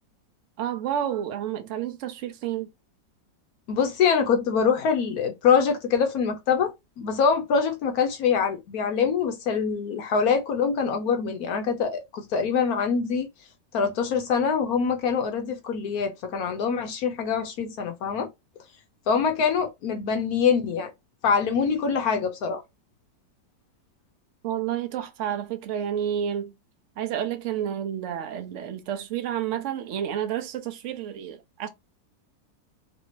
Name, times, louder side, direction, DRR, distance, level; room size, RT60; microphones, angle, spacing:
voice 1, 0.6-2.7 24.4-26.5 27.0-31.7, right 10 dB, 60° right, 0.8 m, -30 dB
voice 2, 3.7-13.3 13.7-18.3 19.1-20.9 21.2-22.6, left 6 dB, 70° left, 1.0 m, -24 dB
3.3 x 2.7 x 3.0 m
omnidirectional pair, 1.9 m